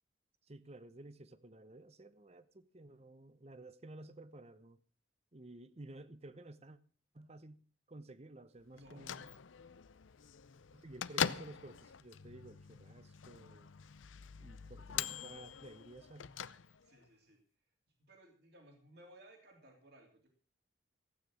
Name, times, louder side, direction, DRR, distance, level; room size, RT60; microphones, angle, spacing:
voice 1, 0.5-4.8 5.3-6.8 7.1-9.3 10.7-13.7 14.4-16.3, right 2 dB, 35° right, 0.8 m, -53 dB
voice 2, 8.7-9.1 16.8-17.4 18.0-20.3, right 1 dB, 55° right, 3.0 m, -60 dB
Bell / Microwave oven, 8.8-17.1, left 8 dB, 85° left, 0.6 m, -43 dB
15.5 x 9.2 x 6.3 m
head